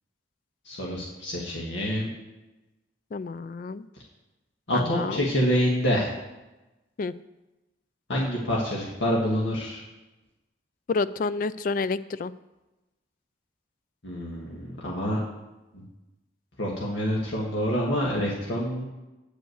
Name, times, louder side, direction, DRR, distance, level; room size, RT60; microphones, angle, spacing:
voice 1, 0.6-2.1 4.7-6.1 8.1-9.8 14.0-15.2 15.7-15.8 16.6-18.8, equal, 85° left, -4 dB, 1.6 m, -27 dB
voice 2, 3.1-3.9 4.7-5.2 7.0-7.1 10.9-12.3, left 4 dB, 45° left, 16 dB, 0.3 m, -29 dB
9.0 x 5.4 x 7.9 m, 1.0 s
head